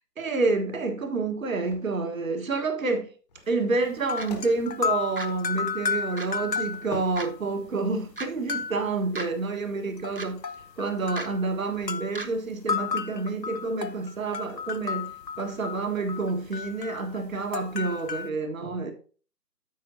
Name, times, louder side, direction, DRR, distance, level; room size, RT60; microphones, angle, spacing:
voice 1, 0.2-3.1 3.5-10.4 10.8-15.1 15.4-18.9, right 3 dB, 55° right, 1.7 m, -28 dB
sound 1, 1.4-2.0 3.3-5.8 6.7-7.9 8.4-8.6, left 4 dB, 25° left, 1.5 m, -46 dB
sound 2, 4.0-7.4 7.6-7.7 8.5-8.9 10.0-11.4 11.8-12.1 12.7-18.3, left 6 dB, 85° left, 1.0 m, -32 dB
sound 3, 4.2-4.3 5.2-5.3 6.2-6.3 7.2-7.3 8.2-8.3 9.2-9.3 10.2-10.3 11.2-11.3 12.2-12.3, right 2 dB, 35° right, 0.5 m, -34 dB
13.0 x 5.1 x 2.8 m
figure-of-eight pair, 145°, 49 cm